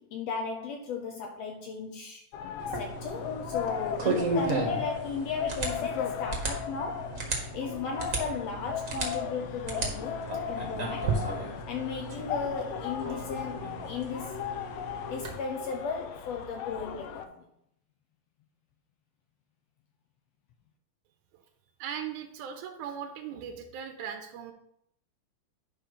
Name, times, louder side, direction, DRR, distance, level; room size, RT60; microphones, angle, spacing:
voice 1, 0.0-2.2 2.7-7.2 7.5-11.1 11.7-14.5 15.0-17.4, left 5 dB, 70° left, 3 dB, 1.6 m, -36 dB
sound 1, 2.3-17.3, left 8 dB, 90° left, 1.4 m, -37 dB
sound 2, 2.6-15.3, right 3 dB, 45° right, 1.1 m, -35 dB
voice 2, 21.8-24.5, right 8 dB, 85° right, 6 dB, 2.2 m, -38 dB
10.0 x 3.9 x 5.3 m, 0.75 s
omnidirectional pair, 3.6 m